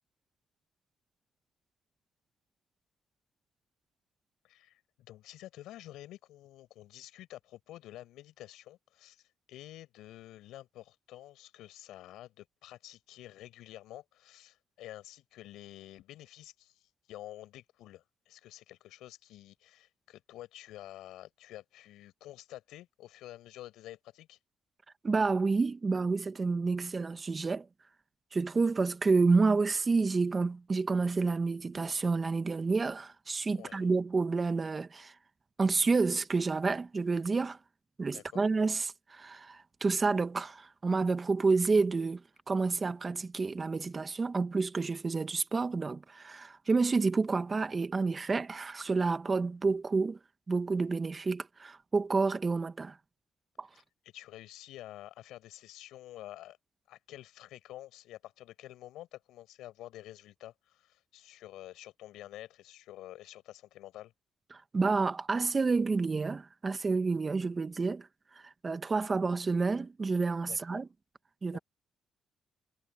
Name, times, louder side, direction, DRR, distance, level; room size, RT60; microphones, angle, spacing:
voice 1, 4.4-24.4 33.5-33.9 38.1-38.4 53.7-56.6 56.9-64.1 70.5-70.8 71.5-71.6, left 14 dB, 90° left, 5.6 m, -49 dB
voice 2, 25.0-27.6 28.3-35.1 35.6-37.6 38.0-42.2 42.5-50.2 50.5-52.9 53.6-53.7 64.5-68.1 68.6-70.9 71.4-71.6, right 4 dB, 30° right, 1.4 m, -29 dB
cardioid pair, 90°, 0 cm